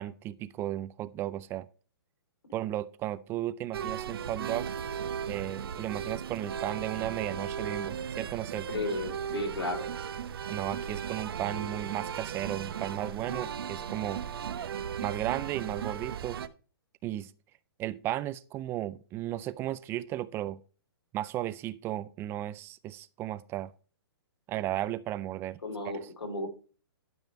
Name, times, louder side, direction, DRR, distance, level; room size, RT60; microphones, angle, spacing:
voice 1, 0.0-1.7 2.5-4.7 5.3-8.7 10.5-14.2 15.0-16.4 17.0-17.3 17.8-20.6 21.1-23.7 24.5-25.6, right 13 dB, 20° right, 0.3 m, -35 dB
sound 1, 3.7-16.5, right 8 dB, 65° right, 0.9 m, -36 dB
voice 2, 8.7-9.9 25.6-26.5, left 2 dB, 90° left, 3.8 m, -33 dB
12.0 x 5.5 x 4.5 m
hypercardioid pair, 140°, 13 cm